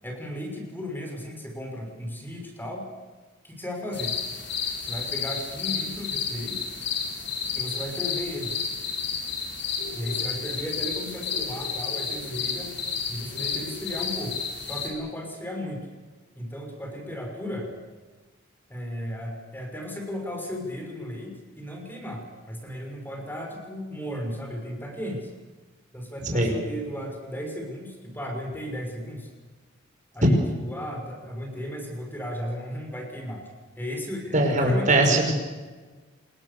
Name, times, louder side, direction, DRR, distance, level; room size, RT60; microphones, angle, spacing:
voice 1, 0.0-2.8 3.4-4.2 4.8-6.7 7.5-8.5 9.9-12.7 13.1-15.9 16.4-17.7 18.7-25.3 25.9-29.3 30.1-33.4 33.8-35.3, equal, 10° left, 2 dB, 6.0 m, -35 dB
sound 1, 3.9-14.9, left 6 dB, 60° left, 4.9 m, -31 dB
voice 2, 34.3-35.3, right 2 dB, 40° right, 2 dB, 5.6 m, -21 dB
28.0 x 20.5 x 7.0 m, 1.3 s
head